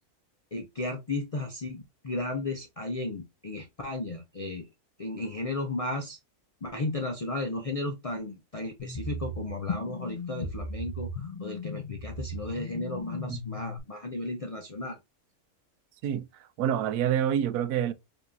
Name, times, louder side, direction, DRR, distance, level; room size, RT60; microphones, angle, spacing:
voice 1, 0.5-4.7 5.0-6.2 6.6-15.0, left 2 dB, 60° left, 0.3 m, -34 dB
sound 1, 8.8-13.8, left 2 dB, 40° left, 0.9 m, -37 dB
voice 2, 16.6-17.9, right 10 dB, 90° right, 1.1 m, -27 dB
5.1 x 2.9 x 2.6 m
omnidirectional pair, 1.6 m